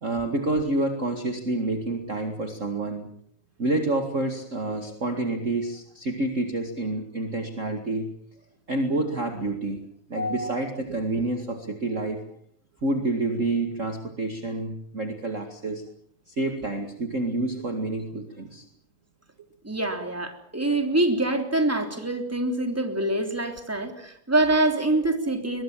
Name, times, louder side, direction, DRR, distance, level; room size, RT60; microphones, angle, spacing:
voice 1, 0.0-3.1 3.6-8.1 8.7-9.8 10.1-12.2 12.8-15.8 16.3-18.7, right 2 dB, 30° right, 5 dB, 1.4 m, -28 dB
voice 2, 10.1-10.6 19.6-25.6, right 2 dB, 5° right, 5 dB, 2.7 m, -25 dB
22.0 x 22.0 x 7.5 m, 0.63 s
omnidirectional pair, 4.5 m